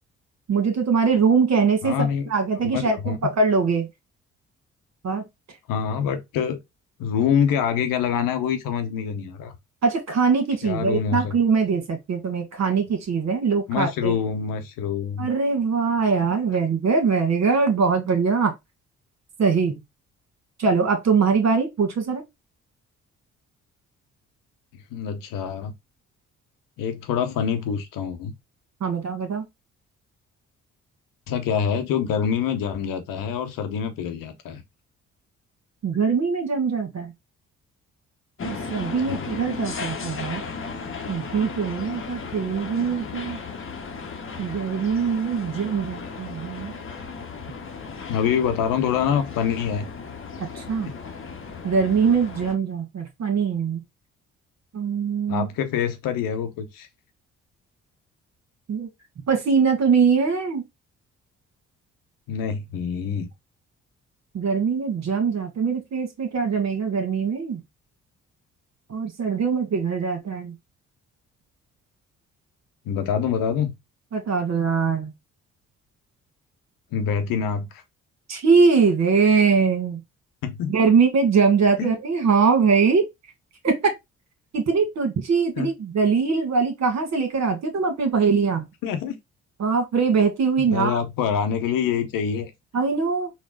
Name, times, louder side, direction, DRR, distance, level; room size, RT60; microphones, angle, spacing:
voice 1, 0.5-3.9 5.0-5.2 9.8-14.1 15.2-18.5 19.4-19.8 20.6-22.2 28.8-29.4 35.8-37.1 38.4-40.4 41.1-43.4 44.4-46.7 50.4-50.9 51.6-53.8 54.7-55.5 58.7-58.9 59.3-60.6 64.3-67.6 68.9-70.5 74.1-75.1 78.3-80.0 80.7-83.0 83.6-83.9 84.5-88.6 89.6-91.0 92.7-93.3, right 5 dB, 50° right, 1.3 m, -22 dB
voice 2, 1.8-2.3 2.6-3.2 5.7-6.6 7.0-9.6 10.6-11.4 13.7-15.3 24.9-25.7 26.8-28.3 31.3-34.6 39.1-39.3 48.1-49.8 55.3-56.9 62.3-63.3 72.8-73.7 76.9-77.7 80.4-80.8 81.8-81.9 85.6-85.7 88.8-89.2 90.6-92.5, left 7 dB, 65° left, 0.8 m, -25 dB
sound 1, 38.4-52.6, left 5 dB, 35° left, 0.9 m, -35 dB
3.9 x 2.2 x 3.7 m
hypercardioid pair, 45°, 35 cm